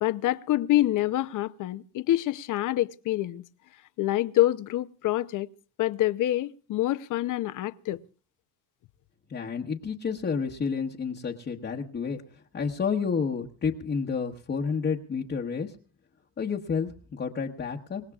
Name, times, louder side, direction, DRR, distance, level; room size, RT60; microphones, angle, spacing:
voice 1, 0.0-3.4 4.0-5.5 5.8-8.0, left 14 dB, 55° left, 0.8 m, -26 dB
voice 2, 9.3-12.2 12.5-15.7 16.4-18.0, left 6 dB, 30° left, 1.2 m, -30 dB
27.0 x 17.5 x 2.4 m
cardioid pair, 120°, 37 cm